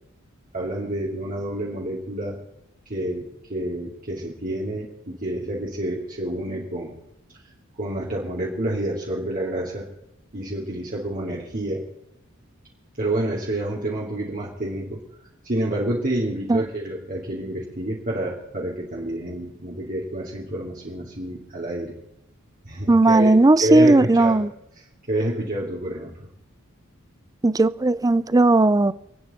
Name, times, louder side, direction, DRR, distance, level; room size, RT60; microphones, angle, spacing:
voice 1, 0.5-2.4 2.9-3.2 3.5-6.9 7.8-9.9 10.3-11.8 13.0-15.0 15.4-21.9 22.6-23.3 23.6-24.4 25.1-26.1, right 1 dB, 45° right, 2.8 m, -28 dB
voice 2, 22.9-24.5 27.4-28.9, right 2 dB, 20° right, 0.5 m, -16 dB
28.0 x 9.5 x 4.3 m
head